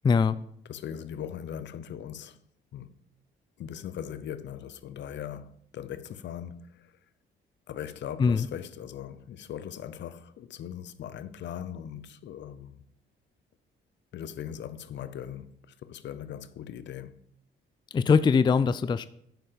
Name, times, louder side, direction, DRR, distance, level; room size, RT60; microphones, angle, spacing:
voice 1, 0.0-0.4 8.2-8.5 17.9-19.1, left 5 dB, 25° left, 0.3 m, -22 dB
voice 2, 0.7-2.4 2.7-2.9 3.6-6.9 7.7-12.8 14.1-17.2, left 9 dB, 65° left, 0.6 m, -40 dB
9.2 x 6.8 x 5.0 m
cardioid pair, 90°, 20 cm